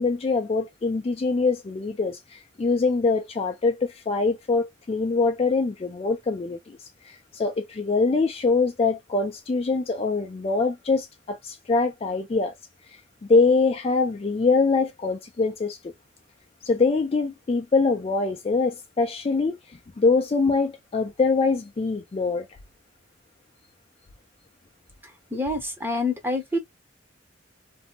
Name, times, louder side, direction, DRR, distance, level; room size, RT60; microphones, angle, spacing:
voice 1, 0.0-6.8 7.0-12.5 12.9-15.8 16.6-22.5, left 4 dB, 30° left, 0.3 m, -24 dB
voice 2, 25.3-26.6, left 2 dB, 10° right, 0.6 m, -26 dB
2.6 x 2.1 x 2.7 m
head